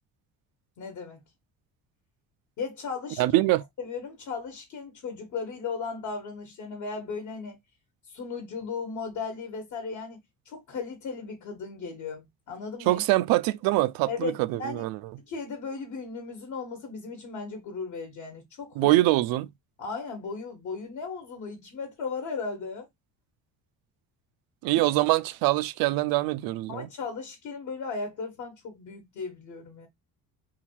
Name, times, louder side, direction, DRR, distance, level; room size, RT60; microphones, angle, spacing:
voice 1, 0.8-1.2 2.6-3.2 3.8-7.6 8.1-10.2 10.4-13.0 14.1-14.9 15.3-18.9 19.8-22.9 24.7-24.8 26.7-29.9, left 4 dB, 55° left, 1.2 m, -36 dB
voice 2, 3.2-3.6 12.9-15.0 18.8-19.5 24.6-26.9, right 18 dB, 80° right, 0.5 m, -24 dB
3.6 x 2.3 x 4.4 m
cardioid pair, 165°, 35 cm